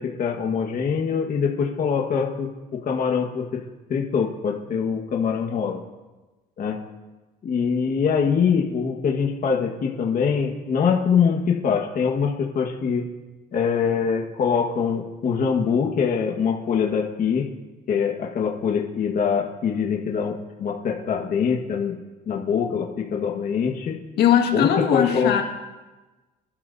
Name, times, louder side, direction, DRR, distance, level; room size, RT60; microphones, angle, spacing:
voice 1, 0.0-3.6 3.9-5.8 6.6-6.8 7.4-13.0 13.5-17.4 17.9-21.9 22.3-23.9 24.5-25.3, left 6 dB, 50° left, 0 dB, 1.5 m, -23 dB
voice 2, 24.2-25.4, left 9 dB, 75° left, 2 dB, 1.8 m, -19 dB
26.0 x 12.0 x 2.7 m, 1.2 s
cardioid pair, 110°, 17 cm